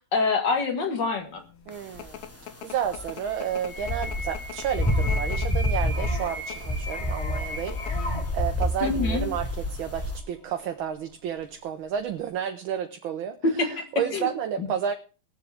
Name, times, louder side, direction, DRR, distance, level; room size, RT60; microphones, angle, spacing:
voice 1, 0.0-1.4 8.8-9.3 13.4-13.9 14.1-14.3 14.6-14.7, left 3 dB, 55° left, 5 dB, 2.5 m, -26 dB
sound 1, 1.4-6.8 7.5-7.9 8.3-8.4 8.6-9.1, left 11 dB, 85° left, 1.8 m, -41 dB
voice 2, 1.7-2.2 2.6-14.9, right 8 dB, 70° right, 6 dB, 1.6 m, -31 dB
sound 2, 2.0-2.2 2.8-10.2, left 1 dB, 15° left, 0.6 m, -28 dB
sound 3, 2.5-11.5 12.0-12.3, left 1 dB, 35° left, 1.6 m, -38 dB
21.0 x 7.5 x 3.5 m, 0.34 s
omnidirectional pair, 2.4 m